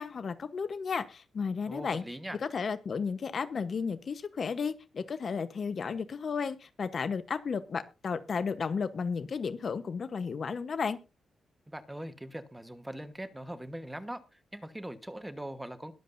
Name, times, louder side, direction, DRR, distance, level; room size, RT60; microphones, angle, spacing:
voice 1, 0.0-2.0 2.4-11.0, left 5 dB, 50° left, 11 dB, 1.0 m, -33 dB
voice 2, 1.7-2.4 11.7-15.9, right 1 dB, 10° right, 9 dB, 1.2 m, -41 dB
21.5 x 7.5 x 2.6 m, 0.29 s
wide cardioid pair, 125°, 0 cm